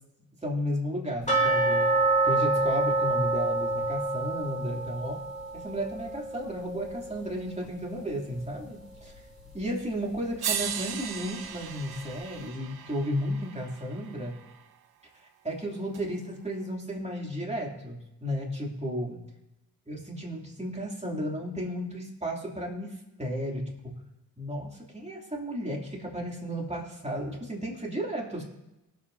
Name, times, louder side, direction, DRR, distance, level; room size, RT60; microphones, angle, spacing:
voice 1, 0.4-1.9 2.3-5.2 5.5-9.1 9.5-14.3 15.4-19.2 19.9-24.0 24.4-28.4, equal, 15° right, -2 dB, 3.0 m, -33 dB
sound 1, 1.3-8.1 8.4-8.5 9.0-9.1 9.7-9.8, right 2 dB, 20° left, 3.0 m, -28 dB
sound 2, 9.8-9.9 10.4-14.6 15.9-16.0, right 8 dB, 70° right, 0.9 m, -37 dB
19.5 x 7.8 x 2.8 m, 0.96 s
cardioid pair, 60°, 38 cm